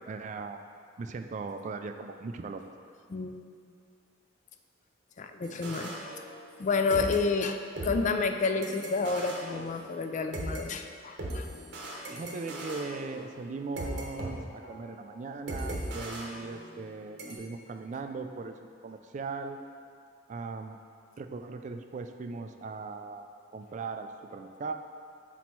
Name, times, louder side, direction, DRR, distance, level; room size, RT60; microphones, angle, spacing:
voice 1, 0.1-0.6 1.0-2.6 7.0-7.2 12.1-18.6 18.8-19.6 20.3-20.8 21.2-24.7, right 4 dB, 40° right, 7 dB, 0.3 m, -39 dB
voice 2, 5.2-5.9 6.6-7.6 7.8-11.5, left 4 dB, 40° left, 6 dB, 0.4 m, -29 dB
sound 1, 5.4-6.6 6.9-10.6 11.2-14.3 14.6-14.9 15.5-16.9 17.2-17.4, right 1 dB, 60° right, 0.9 m, -39 dB
6.1 x 4.1 x 4.5 m, 2.2 s
head